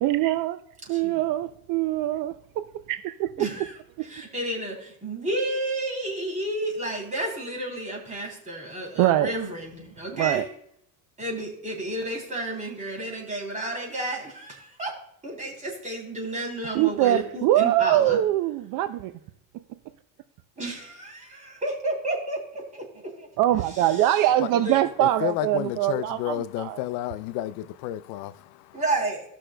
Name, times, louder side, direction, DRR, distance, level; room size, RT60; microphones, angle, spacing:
voice 1, 0.0-0.6 0.9-3.5 9.0-9.3 10.2-10.5 16.7-19.1 23.4-26.8, right 13 dB, 60° right, 0.5 m, -23 dB
voice 2, 3.4-3.7 4.0-10.4 11.2-14.9 15.2-18.2 20.6-22.8 23.2-23.3 23.7-24.0 24.6-24.8 28.7-29.2, right 1 dB, 20° right, 2.9 m, -31 dB
voice 3, 25.0-28.8, left 13 dB, 80° left, 0.5 m, -31 dB
17.5 x 6.2 x 2.2 m
cardioid pair, 145°, 37 cm